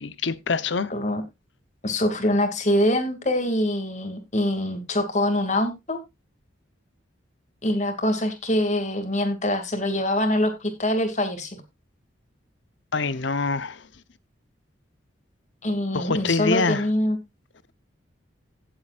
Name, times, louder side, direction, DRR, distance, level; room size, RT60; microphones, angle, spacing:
voice 1, 0.0-0.9 12.9-13.8 15.9-16.8, left 4 dB, 70° left, 0.9 m, -25 dB
voice 2, 0.9-1.2 1.8-6.0 7.6-11.6 15.6-17.2, left 1 dB, 35° left, 2.4 m, -24 dB
16.5 x 7.9 x 2.5 m
head